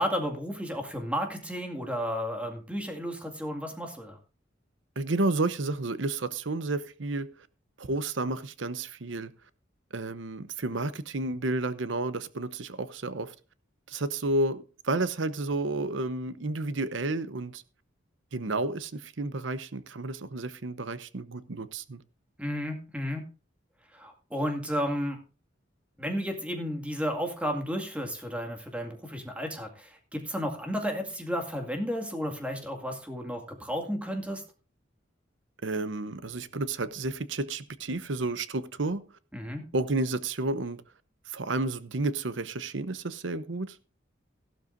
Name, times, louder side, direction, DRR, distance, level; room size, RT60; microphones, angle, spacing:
voice 1, 0.0-4.2 22.4-23.2 23.9-25.2 26.0-34.4 39.3-39.6, equal, 5° right, 2.1 m, -32 dB
voice 2, 5.0-7.3 7.8-9.3 9.9-13.3 13.9-17.6 18.3-22.0 35.6-39.0 39.7-40.8 41.3-43.8, right 2 dB, 80° right, 0.8 m, -31 dB
15.0 x 12.5 x 2.6 m
head